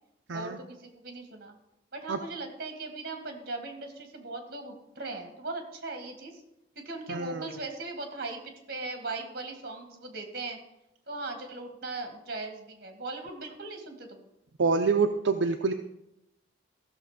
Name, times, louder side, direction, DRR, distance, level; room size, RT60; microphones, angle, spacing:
voice 1, 0.3-1.5 1.9-6.4 6.8-10.6 11.1-14.3, right 3 dB, 50° right, 5 dB, 2.0 m, -39 dB
voice 2, 7.1-7.5 14.6-15.7, right 4 dB, 70° right, 5 dB, 0.6 m, -26 dB
15.0 x 6.6 x 5.1 m, 0.88 s
head